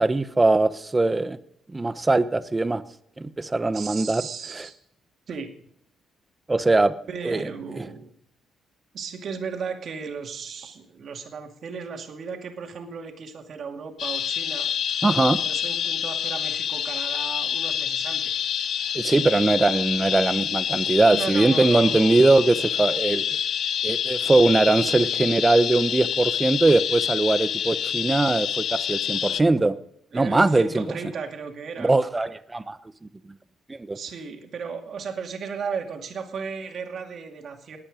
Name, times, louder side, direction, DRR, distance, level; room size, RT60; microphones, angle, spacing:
voice 1, 0.0-1.4 1.7-2.8 3.2-4.2 4.5-4.7 6.5-6.9 7.2-7.5 7.7-7.8 15.0-15.4 18.9-23.4 23.8-29.8 30.1-30.8 31.8-32.8 33.7-34.0, right 2 dB, 20° right, 14 dB, 0.8 m, -21 dB
voice 2, 3.7-4.8 5.3-5.5 7.1-8.1 8.9-14.7 15.3-18.3 21.1-22.4 30.1-31.9 33.9-37.8, right 5 dB, 55° right, 4 dB, 2.4 m, -35 dB
sound 1, 14.0-29.4, left 8 dB, 60° left, 0.5 m, -27 dB
19.5 x 8.7 x 5.1 m, 0.71 s
cardioid pair, 90°, 0 cm